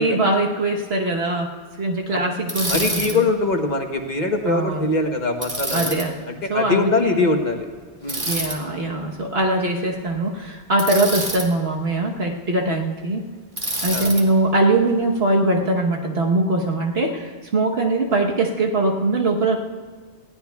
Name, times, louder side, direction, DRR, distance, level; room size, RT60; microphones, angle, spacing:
voice 1, 0.0-1.5 1.8-3.3 4.5-4.9 5.7-6.2 6.5-7.4 8.3-13.2 13.8-19.6, right 2 dB, 65° right, 0 dB, 1.3 m, -22 dB
Bicycle, 2.5-3.2 5.4-6.1 8.1-8.6 10.8-11.5 13.6-14.2, right 1 dB, 30° right, 1.8 m, -26 dB
voice 2, 2.7-6.0 6.3-7.7 8.0-8.3 13.9-14.1, left 3 dB, 45° left, 4 dB, 1.1 m, -22 dB
20.5 x 16.0 x 2.3 m, 1.5 s
omnidirectional pair, 1.2 m